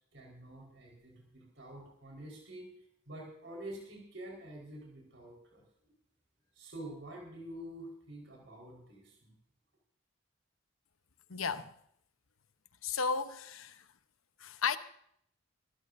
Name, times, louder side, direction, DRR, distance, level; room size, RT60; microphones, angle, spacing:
voice 1, 0.1-5.9 6.5-9.3, right 1 dB, 65° right, 4.5 m, -48 dB
voice 2, 11.3-11.7 12.8-13.8 14.4-14.8, left 5 dB, 90° left, 1.0 m, -34 dB
24.5 x 13.5 x 2.7 m
head